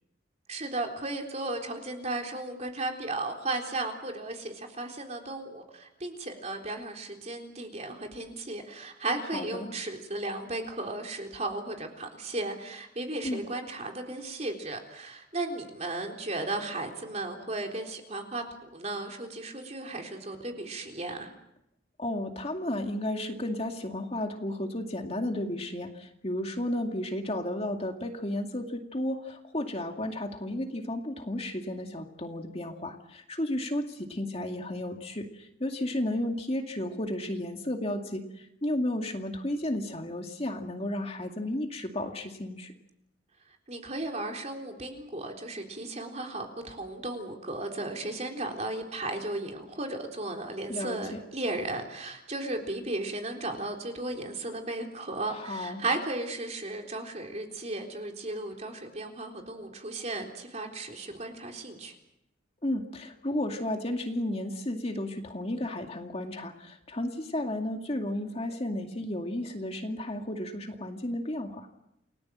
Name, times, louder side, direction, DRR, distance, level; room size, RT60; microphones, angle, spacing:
voice 1, 0.5-21.3 43.7-61.9, right 2 dB, 35° right, 2 dB, 3.8 m, -35 dB
voice 2, 9.3-9.7 13.2-13.4 22.0-42.7 50.7-51.2 55.3-55.8 62.6-71.7, left 1 dB, 35° left, 3 dB, 2.3 m, -33 dB
29.5 x 19.0 x 7.7 m, 0.82 s
head